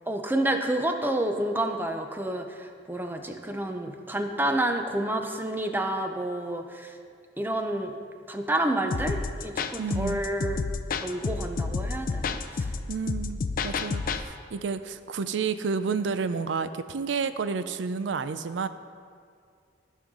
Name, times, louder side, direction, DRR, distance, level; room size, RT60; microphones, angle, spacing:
voice 1, 0.1-6.9 7.4-7.9 8.3-10.6 11.0-12.7, right 1 dB, 10° right, 5 dB, 0.6 m, -29 dB
sound 1, 8.9-14.2, left 4 dB, 50° left, 0.4 m, -30 dB
voice 2, 9.8-10.2 12.9-18.7, right 5 dB, 80° right, 12 dB, 0.4 m, -30 dB
14.5 x 5.6 x 3.7 m, 2.2 s
head